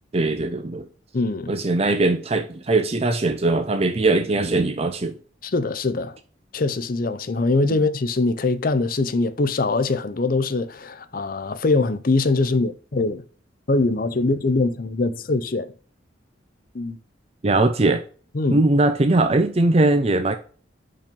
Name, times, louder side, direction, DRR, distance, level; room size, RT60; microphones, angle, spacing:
voice 1, 0.1-0.9 1.5-5.2 7.7-7.8 17.4-18.0 18.5-20.4, right 2 dB, 30° right, 0.5 m, -20 dB
voice 2, 1.1-1.5 5.4-6.2 6.5-13.2 13.7-15.7 16.7-17.0 18.3-18.6, left 3 dB, 45° left, 0.6 m, -22 dB
5.4 x 5.3 x 5.2 m
head